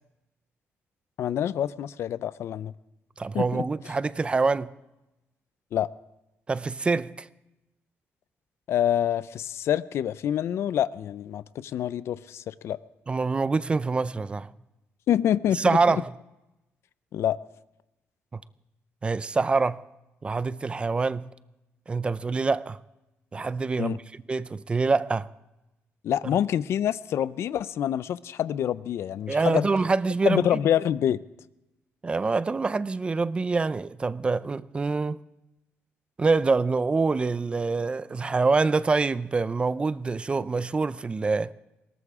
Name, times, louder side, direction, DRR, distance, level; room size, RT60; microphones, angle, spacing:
voice 1, 1.2-2.7 3.3-3.7 5.7-5.9 8.7-12.8 15.1-15.8 17.1-17.4 23.8-24.0 26.0-29.7 30.3-31.2, left 10 dB, 70° left, 0.5 m, -26 dB
voice 2, 3.2-4.7 6.5-7.3 13.1-14.5 15.5-16.1 18.3-18.4 19.0-19.8 20.2-21.3 21.9-22.8 23.3-24.0 24.3-25.3 29.3-30.5 32.0-35.2 36.2-41.5, right 4 dB, 20° right, 0.4 m, -25 dB
20.5 x 18.0 x 3.6 m
cardioid pair, 140°, 5 cm